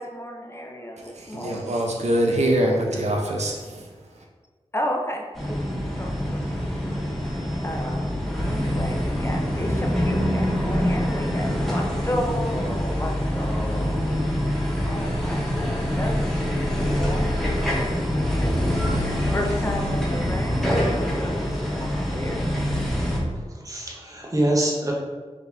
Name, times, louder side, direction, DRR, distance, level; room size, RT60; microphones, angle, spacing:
voice 1, 0.0-1.8 4.7-5.6 5.9-6.9 7.2-14.1 14.9-16.4 16.7-22.4, equal, 25° left, 1 dB, 0.6 m, -33 dB
voice 2, 1.0-3.9, right 1 dB, 85° right, 1 dB, 0.6 m, -24 dB
sound 1, 5.3-23.2, equal, 5° left, 1.0 m, -25 dB
voice 3, 23.3-24.9, right 1 dB, 30° right, -1 dB, 0.9 m, -25 dB
4.0 x 2.8 x 3.6 m, 1.4 s
wide cardioid pair, 60°, 11 cm